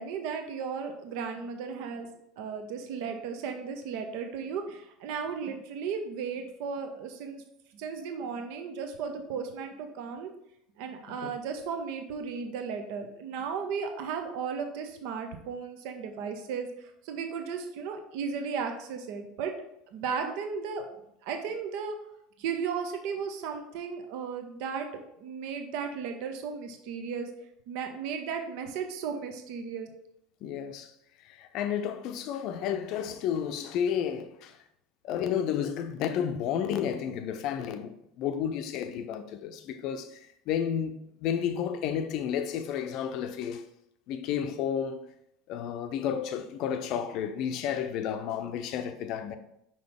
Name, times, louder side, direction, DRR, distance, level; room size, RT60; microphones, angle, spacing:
voice 1, 0.0-2.1 2.4-7.4 7.7-10.3 10.8-19.5 19.9-20.9 21.2-22.0 22.4-24.9 25.2-27.3 27.7-29.9, right 6 dB, 55° right, 0.8 m, -35 dB
voice 2, 30.4-30.9 31.2-34.6 35.0-40.2 40.5-43.6 44.1-45.0 45.5-49.4, left 8 dB, 50° left, 0.6 m, -31 dB
5.6 x 5.3 x 3.5 m
figure-of-eight pair, 75°, 0 cm